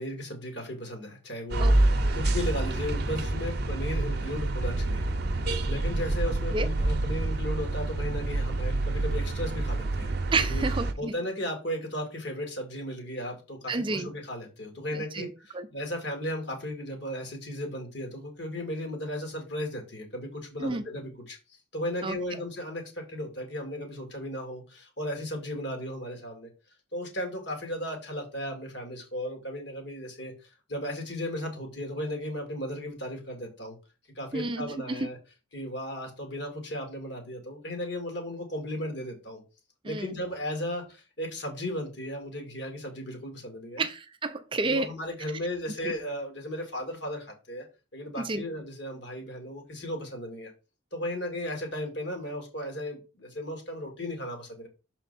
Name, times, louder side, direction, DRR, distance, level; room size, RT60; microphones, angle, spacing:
voice 1, 0.0-5.1 5.3-10.2 10.5-10.7 11.0-21.4 21.7-26.5 26.9-33.7 34.2-35.2 35.5-39.4 39.8-43.8 44.6-47.7 47.9-50.5 50.9-54.7, left 1 dB, 55° left, 2.1 m, -35 dB
sound 1, 1.5-10.9, right 2 dB, 50° right, 0.7 m, -27 dB
voice 2, 10.3-11.1 13.7-14.1 14.9-15.3 15.5-15.7 20.6-20.8 22.0-22.2 34.3-35.1 39.8-40.1 43.8-44.9 48.2-48.4, right 3 dB, 25° right, 0.4 m, -30 dB
6.4 x 4.3 x 4.1 m
head